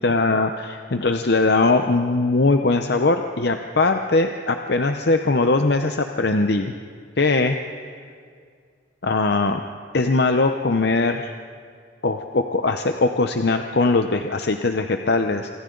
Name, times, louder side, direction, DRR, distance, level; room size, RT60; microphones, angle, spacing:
voice 1, 0.0-6.7 7.2-7.5 9.0-9.6 9.9-11.3 12.0-15.5, left 3 dB, 60° left, 6 dB, 0.8 m, -20 dB
26.5 x 26.5 x 3.9 m, 2.1 s
head